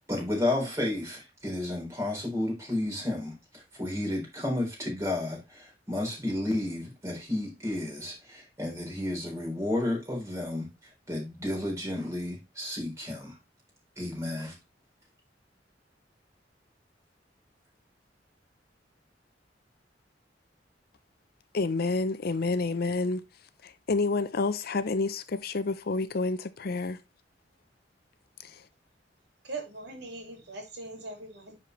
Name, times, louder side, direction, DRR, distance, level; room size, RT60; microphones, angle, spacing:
voice 1, 0.1-10.7 11.1-13.4 14.0-14.5, left 1 dB, 15° right, 4.0 m, -32 dB
voice 2, 21.5-23.2 23.6-27.0 28.4-28.6, left 3 dB, 60° left, 0.6 m, -29 dB
voice 3, 29.4-31.5, right 3 dB, 65° right, 2.5 m, -40 dB
10.5 x 4.3 x 3.1 m
head